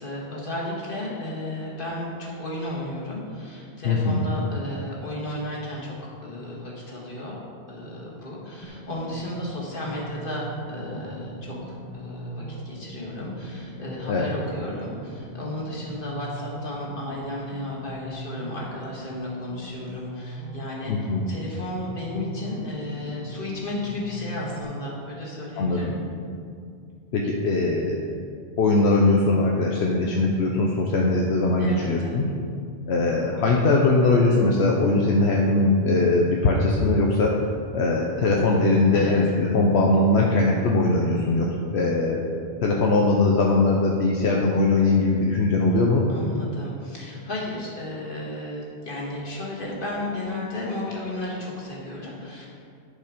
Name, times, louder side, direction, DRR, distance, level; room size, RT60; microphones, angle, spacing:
voice 1, 0.0-7.4 7.7-25.9 31.6-32.1 38.9-39.1 46.1-52.5, left 1 dB, 55° left, -4 dB, 2.1 m, -33 dB
voice 2, 3.8-4.2 14.1-14.3 20.9-21.2 25.6-25.9 27.1-28.0 28.6-32.2 32.9-37.4 37.7-42.2 42.6-46.0, left 2 dB, 80° left, -1 dB, 1.0 m, -21 dB
sound 1, 8.6-24.6, right 2 dB, 25° left, 1.4 m, -40 dB
10.5 x 5.3 x 5.1 m, 2.3 s
omnidirectional pair, 1.1 m